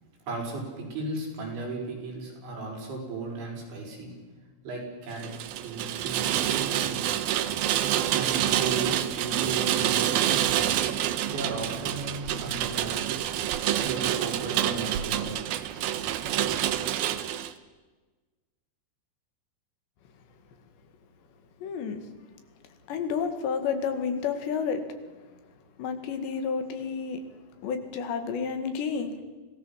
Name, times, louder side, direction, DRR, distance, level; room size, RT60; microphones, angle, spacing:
voice 1, 0.3-4.1 4.6-5.3 5.6-7.0 8.1-10.7 11.3-13.4 13.8-15.4, right 3 dB, 90° right, -1 dB, 8.3 m, -35 dB
Rain, 5.2-17.5, right 11 dB, 70° right, 2.6 m, -27 dB
voice 2, 21.6-22.0 22.9-24.8 25.8-27.2 27.6-29.2, left 6 dB, 75° left, 7 dB, 4.2 m, -30 dB
26.0 x 18.0 x 7.4 m, 1.3 s
omnidirectional pair, 5.1 m